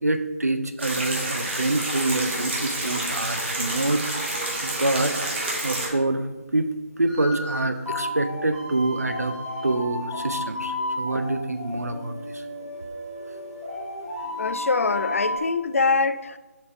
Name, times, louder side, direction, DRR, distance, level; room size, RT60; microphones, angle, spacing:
voice 1, 0.0-4.0 4.6-5.2 5.6-6.2 6.5-6.7 7.0-9.4 9.6-12.4, right 2 dB, 90° right, 8 dB, 0.6 m, -26 dB
sound 1, 0.8-5.9, right 2 dB, 50° right, 1.8 m, -29 dB
sound 2, 7.1-15.4, left 1 dB, ahead, 0.6 m, -32 dB
voice 2, 14.4-16.4, left 4 dB, 60° left, 13 dB, 0.4 m, -24 dB
7.0 x 5.2 x 2.6 m, 1.2 s
figure-of-eight pair, 155°, 8 cm